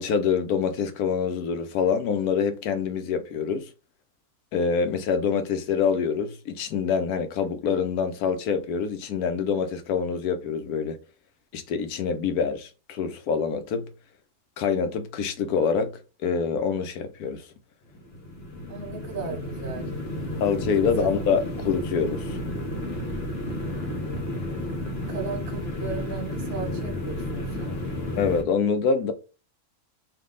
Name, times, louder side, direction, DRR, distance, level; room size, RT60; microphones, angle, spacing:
voice 1, 0.0-3.7 4.5-11.0 11.5-13.9 14.6-15.9 16.2-17.4 20.4-22.4 28.2-29.1, left 6 dB, 85° left, 1.1 m, -25 dB
sound 1, 17.9-28.4, left 1 dB, 50° left, 1.0 m, -32 dB
voice 2, 18.7-19.9 20.8-21.1 25.1-27.8, right 4 dB, 65° right, 1.4 m, -36 dB
3.5 x 2.7 x 3.7 m
omnidirectional pair, 1.5 m